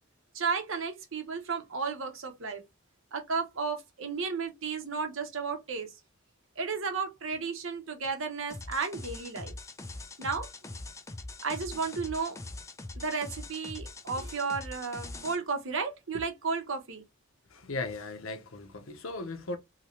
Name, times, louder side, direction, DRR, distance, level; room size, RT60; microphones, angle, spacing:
voice 1, 0.3-2.6 3.1-5.9 6.6-9.5 10.2-10.5 11.4-12.4 12.9-17.0, right 5 dB, 70° right, 0.8 m, -33 dB
sound 1, 8.5-15.3, left 2 dB, 15° left, 0.4 m, -42 dB
voice 2, 17.5-19.6, left 3 dB, 80° left, 0.8 m, -37 dB
2.8 x 2.8 x 2.9 m
head